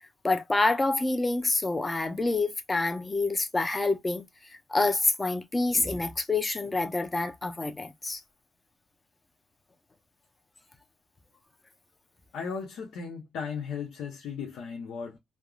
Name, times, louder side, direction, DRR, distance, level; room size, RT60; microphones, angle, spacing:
voice 1, 0.2-4.3 4.7-8.2, left 2 dB, 20° left, 0.6 m, -27 dB
voice 2, 12.3-15.2, left 6 dB, 80° left, 0.8 m, -36 dB
3.5 x 2.1 x 2.3 m
cardioid pair, 90°, 0 cm